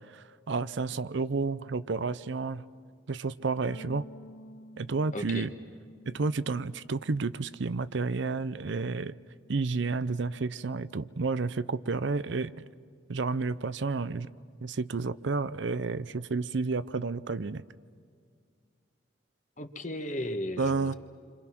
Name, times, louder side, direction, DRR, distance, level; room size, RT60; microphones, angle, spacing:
voice 1, 0.1-2.6 3.1-4.1 4.8-5.5 6.1-9.1 9.5-12.6 13.1-14.3 14.6-17.6 20.6-20.9, right 4 dB, 65° right, 15 dB, 0.6 m, -31 dB
sound 1, 3.7-8.2 8.5-9.9, left 1 dB, 60° left, 0.8 m, -52 dB
voice 2, 5.1-5.5 19.6-20.9, left 1 dB, 40° left, 7 dB, 1.4 m, -35 dB
29.0 x 26.0 x 6.0 m, 2.2 s
head